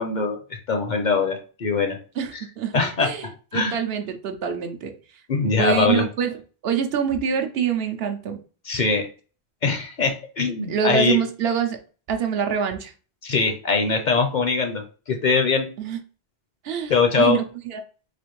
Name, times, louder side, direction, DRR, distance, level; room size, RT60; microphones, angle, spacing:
voice 1, 0.0-2.0 2.3-2.4 2.7-3.8 5.3-6.1 8.6-9.1 9.6-11.2 13.2-15.7 16.9-17.4, left 4 dB, 55° left, 5 dB, 0.6 m, -22 dB
voice 2, 2.2-3.3 3.5-4.9 5.4-6.4 6.6-8.4 10.7-11.8 12.1-12.9 15.8-16.0 16.6-17.8, right 7 dB, 70° right, 5 dB, 0.8 m, -25 dB
4.2 x 2.4 x 3.0 m, 0.37 s
omnidirectional pair, 1.1 m